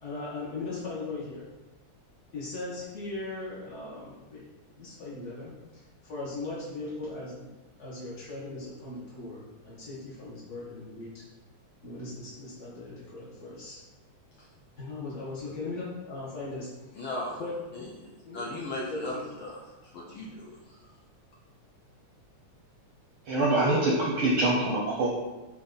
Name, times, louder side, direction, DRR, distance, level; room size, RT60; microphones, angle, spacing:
voice 1, 0.0-1.5 2.3-4.4 4.8-7.5 7.8-11.2 11.8-13.8 14.8-17.0 17.4-17.5 18.3-18.4 18.9-19.0, left 3 dB, 55° left, -8 dB, 0.8 m, -39 dB
voice 2, 16.9-17.4 17.7-20.8, left 1 dB, 85° left, -4 dB, 1.1 m, -38 dB
voice 3, 23.3-25.1, right 2 dB, 75° right, -3 dB, 1.2 m, -24 dB
8.1 x 3.0 x 3.9 m, 1.1 s
omnidirectional pair, 3.4 m